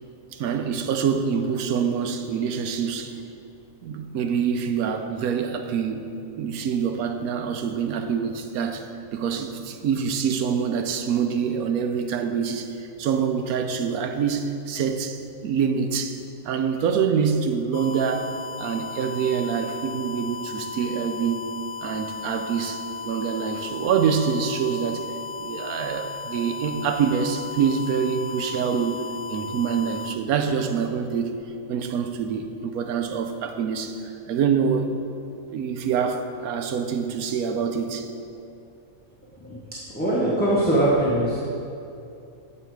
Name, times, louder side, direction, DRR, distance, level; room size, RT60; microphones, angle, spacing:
voice 1, 0.3-3.2 3.8-6.1 6.4-21.5 21.8-25.1 25.4-29.0 29.3-31.4 31.7-35.0 35.5-38.1, right 6 dB, 85° right, 6 dB, 1.1 m, -26 dB
sound 1, 17.7-30.2, left 4 dB, 80° left, 1.1 m, -36 dB
voice 2, 39.9-41.4, right 1 dB, 10° left, -8 dB, 0.9 m, -21 dB
8.5 x 5.6 x 4.6 m, 2.6 s
omnidirectional pair, 1.5 m